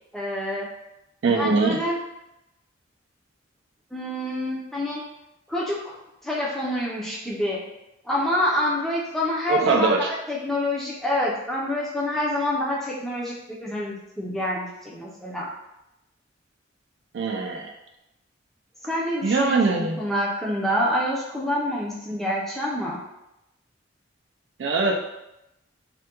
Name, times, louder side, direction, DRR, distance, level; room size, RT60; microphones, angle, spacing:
voice 1, 0.1-0.7 1.3-2.0 3.9-5.0 5.5-5.9 6.2-7.6 8.0-15.5 18.8-23.0, left 1 dB, ahead, -5 dB, 0.5 m, -27 dB
voice 2, 1.2-1.8 9.5-10.1 17.1-17.7 19.2-20.0 24.6-24.9, right 3 dB, 65° right, 1 dB, 0.3 m, -22 dB
3.4 x 2.2 x 2.9 m, 0.89 s
head